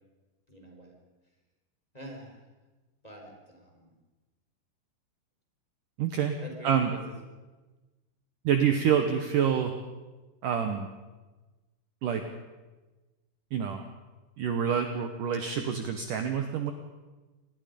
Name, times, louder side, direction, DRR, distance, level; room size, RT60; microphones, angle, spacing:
voice 1, 0.5-0.9 1.9-2.5 3.0-3.9 6.4-7.2, right 1 dB, 10° left, 1 dB, 3.5 m, -46 dB
voice 2, 6.0-6.4 6.6-6.9 8.4-9.7 10.4-10.9 12.0-12.2 13.5-13.9 14.4-16.7, right 8 dB, 75° right, 6 dB, 1.9 m, -27 dB
26.5 x 20.0 x 5.3 m, 1.2 s
omnidirectional pair, 5.4 m